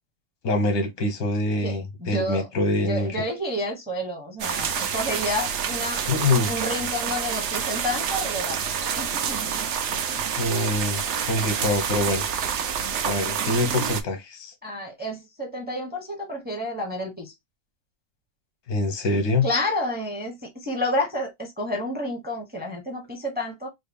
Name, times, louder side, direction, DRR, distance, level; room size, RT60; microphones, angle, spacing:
voice 1, 0.4-3.2 6.1-6.5 10.4-12.2 13.0-14.5 18.7-19.5, left 2 dB, 85° left, 1.5 m, -25 dB
voice 2, 1.6-2.5 2.8-6.0 6.5-8.6 8.9-9.7 10.1-10.3 14.6-17.3 19.4-20.4 20.6-23.7, left 1 dB, 10° right, 0.6 m, -30 dB
sound 1, 4.4-14.0, right 7 dB, 60° right, 0.8 m, -28 dB
4.0 x 2.1 x 3.4 m
omnidirectional pair, 1.6 m